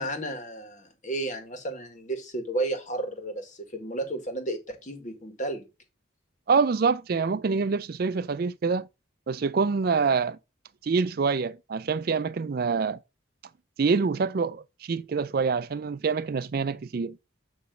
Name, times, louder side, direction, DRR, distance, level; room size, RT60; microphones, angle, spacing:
voice 1, 0.0-5.7, right 2 dB, 35° left, 1.7 m, -33 dB
voice 2, 6.5-8.9 9.3-10.4 10.8-13.0 13.8-17.2, right 5 dB, 50° right, 0.4 m, -26 dB
9.2 x 3.1 x 6.0 m
head